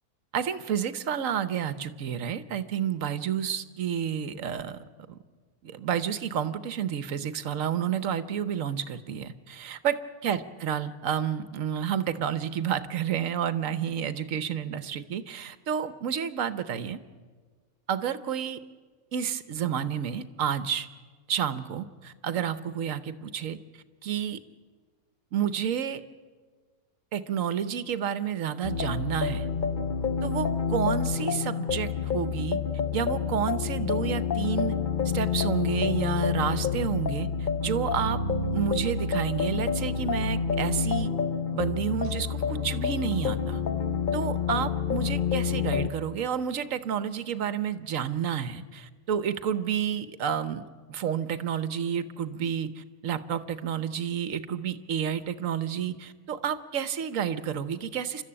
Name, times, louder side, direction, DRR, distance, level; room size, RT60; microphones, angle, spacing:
voice 1, 0.3-5.2 5.6-17.0 17.9-18.6 19.1-20.9 21.3-23.6 24.0-24.4 25.3-26.0 27.1-29.5 30.2-32.6 32.9-34.7 35.1-38.2 38.5-41.1 41.5-43.6 44.1-58.2, right 8 dB, 65° right, 13 dB, 1.3 m, -30 dB
sound 1, 28.6-45.9, left 7 dB, 45° left, 0.7 m, -28 dB
sound 2, 37.6-47.5, right 6 dB, 85° right, 1.3 m, -40 dB
29.5 x 13.0 x 8.7 m, 1.5 s
omnidirectional pair, 1.6 m